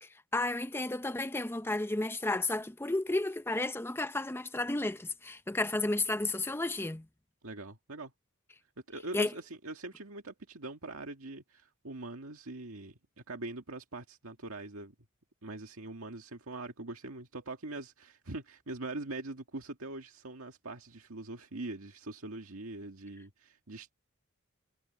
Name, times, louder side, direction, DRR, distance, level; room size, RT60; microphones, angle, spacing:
voice 1, 0.0-7.1 9.1-9.3, left 2 dB, 10° left, 0.6 m, -32 dB
voice 2, 7.4-8.1 8.9-14.9 15.4-23.9, right 2 dB, 90° right, 1.9 m, -43 dB
head